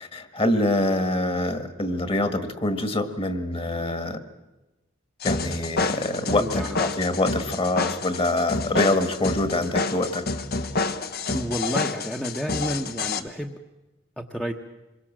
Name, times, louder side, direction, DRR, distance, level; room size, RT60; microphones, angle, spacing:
voice 1, 0.0-4.2 5.2-10.3, left 2 dB, 30° left, 10 dB, 1.8 m, -25 dB
sound 1, 5.2-13.2, left 3 dB, 50° left, 1.2 m, -28 dB
voice 2, 6.4-6.8 11.3-13.6 14.2-14.5, equal, 5° left, 2 dB, 1.1 m, -30 dB
26.0 x 23.0 x 7.5 m, 1.0 s
head